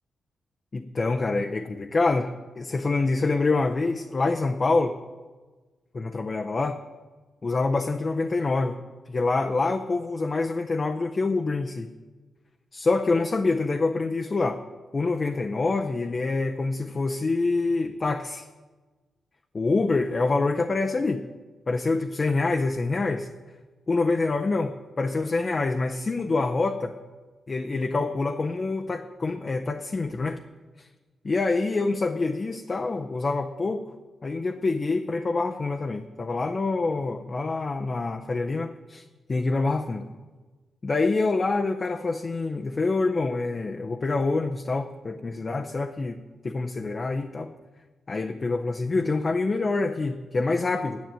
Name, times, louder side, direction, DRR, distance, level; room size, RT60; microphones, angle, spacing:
voice 1, 0.7-5.0 5.9-6.8 7.4-8.8 9.1-11.9 12.7-14.6 14.9-18.5 19.5-21.2 21.7-23.3 23.9-27.0 27.5-30.4 30.8-30.9 31.2-33.8 34.2-39.0 39.3-40.1 40.8-46.2 46.4-47.5 48.1-51.0, left 3 dB, 30° left, 4 dB, 0.6 m, -26 dB
10.5 x 7.5 x 9.0 m, 1.3 s
wide cardioid pair, 130°, 0 cm